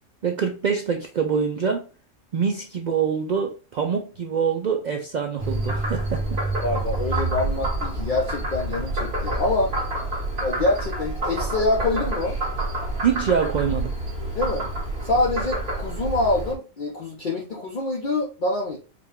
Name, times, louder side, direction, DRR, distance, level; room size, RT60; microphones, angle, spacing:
voice 1, 0.2-1.9 2.3-6.4 13.0-14.0, right 6 dB, 90° right, 3 dB, 0.4 m, -25 dB
Frog, 5.4-16.5, right 2 dB, 50° right, 1.6 m, -28 dB
voice 2, 6.6-9.7 10.4-12.4 14.3-14.7 15.0-18.8, left 2 dB, 50° left, -1 dB, 0.7 m, -25 dB
4.9 x 2.3 x 3.5 m, 0.33 s
omnidirectional pair, 1.3 m